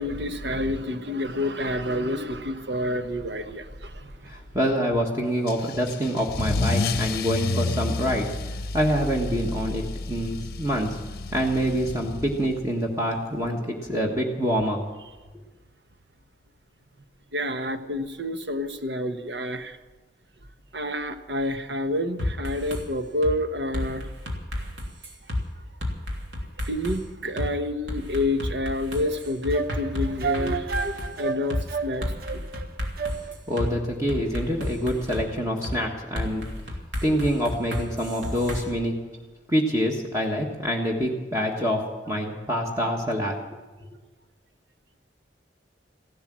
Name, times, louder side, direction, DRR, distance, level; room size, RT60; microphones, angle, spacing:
voice 1, 0.0-4.3 17.3-19.8 20.7-24.1 26.6-30.8 31.2-32.4, left 1 dB, 70° right, 8 dB, 1.2 m, -28 dB
voice 2, 4.3-8.3 8.7-9.8 10.1-11.0 11.3-14.8 33.5-36.5 37.0-38.9 39.5-43.4, equal, 15° right, -1 dB, 1.5 m, -26 dB
Car / Engine starting / Accelerating revving vroom, 5.5-12.6, left 3 dB, 55° left, 0.7 m, -30 dB
sound 1, 22.2-22.8 23.2-23.4 23.7-25.4 25.8-27.0 27.4-27.5 27.9-31.1 31.5-31.6 32.0-33.7 34.1-35.3 35.6-35.8 36.2-38.6, left 1 dB, 85° right, 3.1 m, -31 dB
sound 2, 29.1-33.6, right 5 dB, 55° right, 0.8 m, -32 dB
16.0 x 11.5 x 7.5 m, 1.3 s
head